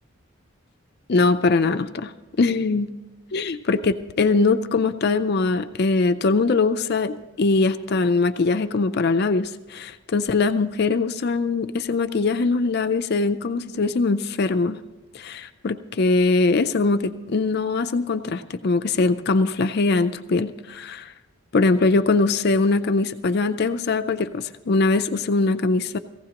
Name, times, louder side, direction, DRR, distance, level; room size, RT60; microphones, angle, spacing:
voice 1, 1.1-2.1 2.4-2.9 3.3-14.8 15.1-21.1 21.5-26.0, left 3 dB, 50° left, 9 dB, 0.4 m, -22 dB
18.0 x 15.5 x 2.9 m, 1.2 s
head